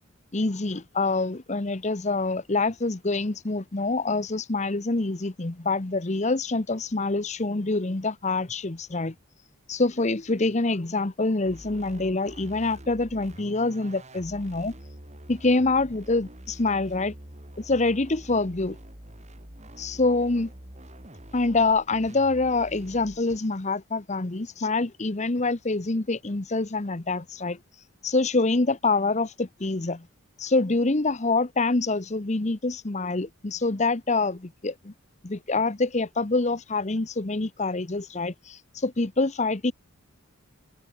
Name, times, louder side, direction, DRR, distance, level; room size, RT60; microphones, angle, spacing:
voice 1, 0.3-9.1 9.7-14.7 15.3-17.1 17.6-18.8 19.8-20.5 21.3-27.6 28.0-30.1 30.4-34.9 35.2-39.7, left 3 dB, 30° left, 0.9 m, -26 dB
sound 1, 11.4-23.4, right 1 dB, 30° right, 5.2 m, -46 dB
head